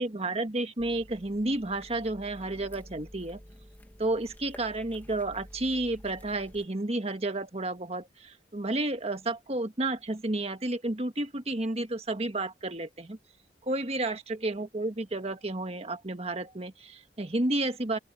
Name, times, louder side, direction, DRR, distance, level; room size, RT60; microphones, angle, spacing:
voice 1, 0.0-3.4 4.0-13.2 13.7-18.0, right 2 dB, 35° right, 1.5 m, -31 dB
sound 1, 0.8-6.7, equal, 10° left, 1.7 m, -50 dB
open air
head